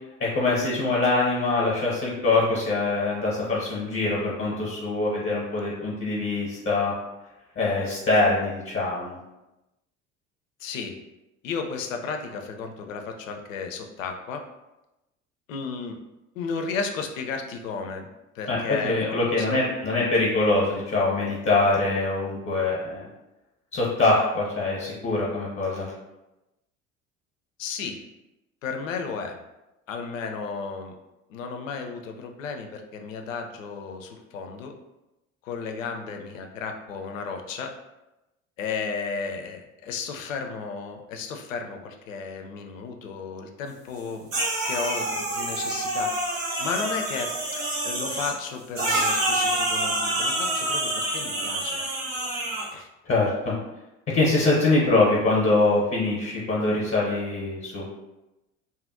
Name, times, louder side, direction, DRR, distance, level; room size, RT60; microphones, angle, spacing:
voice 1, 0.2-6.9 7.6-9.2 18.5-23.1 23.7-25.9 53.1-53.5 54.1-57.9, left 2 dB, 30° left, -5 dB, 0.9 m, -23 dB
voice 2, 10.6-11.0 11.4-14.4 15.5-16.0 16.3-18.1 18.3-19.5 27.6-28.0 28.6-29.4 29.9-31.0 31.3-34.7 35.4-37.7 38.6-44.3 44.6-51.8 52.7-52.9, left 5 dB, 75° left, 4 dB, 0.5 m, -34 dB
sound 1, 44.3-48.3 48.8-52.7, right 1 dB, 80° right, 0.9 m, -27 dB
2.6 x 2.4 x 2.5 m, 0.96 s
figure-of-eight pair, 60°, 39 cm